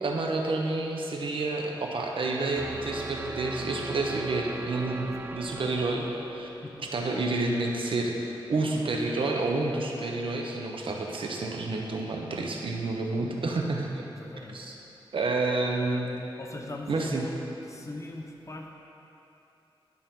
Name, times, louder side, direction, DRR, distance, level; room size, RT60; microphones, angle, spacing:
voice 1, 0.0-6.5 6.9-14.0 14.5-14.7 15.1-16.1 16.9-17.2, right 2 dB, 70° right, 1 dB, 0.9 m, -29 dB
sound 1, 2.6-8.6, right 2 dB, 20° right, 0.4 m, -41 dB
voice 2, 14.1-14.6 16.4-17.4 17.6-18.7, left 2 dB, 35° left, 1 dB, 0.9 m, -41 dB
11.5 x 5.8 x 3.8 m, 2.9 s
wide cardioid pair, 80°, 9 cm